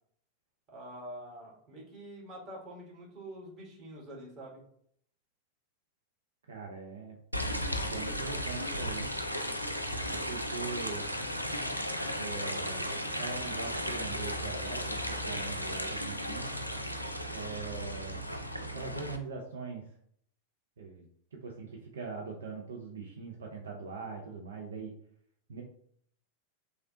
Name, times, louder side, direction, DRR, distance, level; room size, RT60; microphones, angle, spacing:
voice 1, 0.7-4.6, right 1 dB, 30° right, -4 dB, 1.4 m, -46 dB
voice 2, 6.5-7.2 7.8-9.1 10.1-11.1 12.1-12.9 13.2-16.5 17.3-18.3 18.7-19.9 20.8-24.9 25.5-25.6, right 4 dB, 65° right, 0 dB, 0.4 m, -41 dB
sound 1, 7.3-19.2, equal, 90° left, 0.3 m, -35 dB
3.1 x 2.4 x 2.7 m, 0.66 s
figure-of-eight pair, 90°, 0 cm